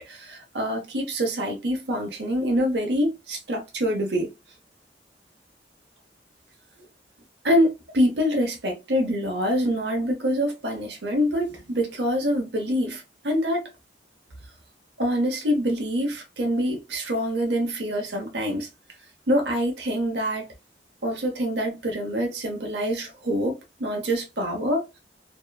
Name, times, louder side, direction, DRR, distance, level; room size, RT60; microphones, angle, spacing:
voice 1, 0.0-4.3 7.4-13.6 15.0-18.7 19.3-20.5 21.0-25.0, equal, 75° right, 0.8 m, -25 dB
2.8 x 2.3 x 2.3 m
head